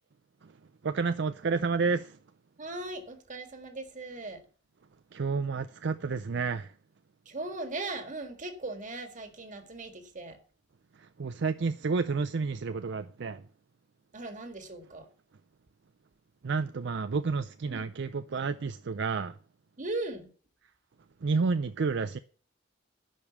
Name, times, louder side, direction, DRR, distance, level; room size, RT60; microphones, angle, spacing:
voice 1, 0.8-2.2 5.1-6.7 11.0-13.4 16.4-19.4 21.2-22.2, right 4 dB, 65° right, 0.5 m, -30 dB
voice 2, 2.6-4.4 7.3-10.4 14.1-15.1 17.7-17.9 19.8-20.3, right 2 dB, 45° right, 1.8 m, -38 dB
11.0 x 5.4 x 7.0 m
head